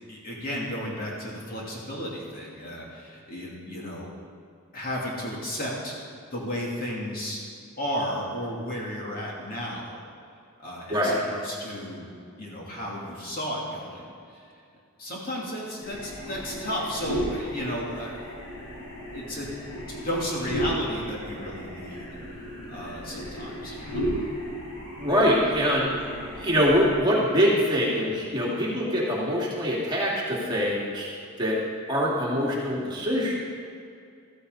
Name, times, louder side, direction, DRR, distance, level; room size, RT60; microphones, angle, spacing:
voice 1, 0.1-4.1 4.7-6.0 6.3-7.4 7.8-10.0 10.6-12.1 12.4-14.5 15.0-18.4 19.1-19.5 19.9-22.2 22.7-24.1, equal, 40° left, -4 dB, 2.9 m, -33 dB
voice 2, 10.9-11.2 25.0-26.1 26.4-31.1 31.4-31.6 31.9-33.4, equal, 20° right, -5 dB, 2.4 m, -24 dB
sound 1, 15.8-26.9, equal, 80° left, 4.0 m, -35 dB
15.0 x 14.0 x 4.0 m, 2.3 s
head